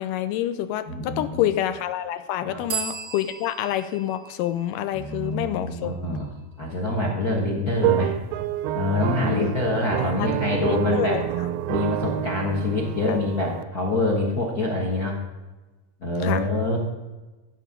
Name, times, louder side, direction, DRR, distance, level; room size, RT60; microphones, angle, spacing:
voice 1, 0.0-5.9 9.2-9.5 10.0-11.5 13.1-13.2 16.2-16.5, left 12 dB, 80° left, 11 dB, 2.1 m, -28 dB
voice 2, 0.9-1.5 2.4-2.6 4.9-6.3 6.6-8.2 8.7-11.2 11.7-15.2 16.0-16.8, left 2 dB, 60° left, -1 dB, 0.9 m, -25 dB
sound 1, 2.7-6.2, right 7 dB, 45° right, 1.1 m, -37 dB
sound 2, 7.8-13.6, right 12 dB, 90° right, 2.4 m, -28 dB
16.0 x 6.6 x 3.7 m, 1.2 s
omnidirectional pair, 4.1 m